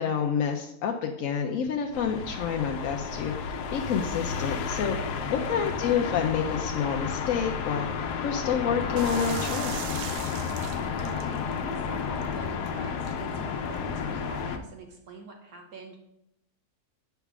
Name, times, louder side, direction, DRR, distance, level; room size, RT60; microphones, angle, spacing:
voice 1, 0.0-9.8, left 7 dB, 65° left, 2 dB, 0.9 m, -29 dB
sound 1, 1.9-14.6, left 6 dB, 90° left, 1.2 m, -32 dB
voice 2, 5.0-5.6 10.5-16.0, right 3 dB, 70° right, 2 dB, 1.4 m, -45 dB
sound 2, 9.0-14.4, right 9 dB, 85° right, 1.2 m, -42 dB
8.1 x 3.5 x 6.0 m, 0.82 s
omnidirectional pair, 1.7 m